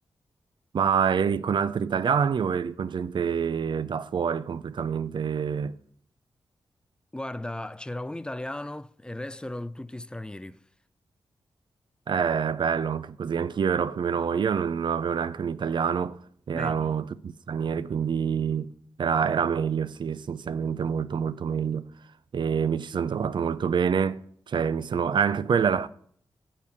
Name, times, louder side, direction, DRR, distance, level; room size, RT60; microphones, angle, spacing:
voice 1, 0.7-5.8 12.1-16.2 16.5-18.7 19.0-21.9 22.3-25.9, right 7 dB, 60° right, 0.4 m, -26 dB
voice 2, 7.1-10.6 16.5-17.0, left 1 dB, 10° left, 0.4 m, -36 dB
6.7 x 5.4 x 6.5 m
cardioid pair, 55°, 9 cm